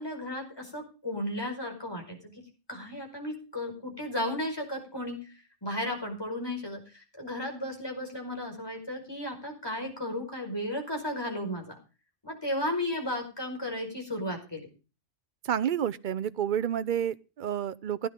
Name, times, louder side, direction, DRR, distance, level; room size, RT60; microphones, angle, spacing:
voice 1, 0.0-2.2 2.7-5.2 5.6-11.8 12.2-14.7, left 1 dB, 20° left, 5.1 m, -34 dB
voice 2, 15.5-18.1, right 9 dB, 50° right, 0.8 m, -29 dB
16.5 x 10.0 x 3.7 m
omnidirectional pair, 1.2 m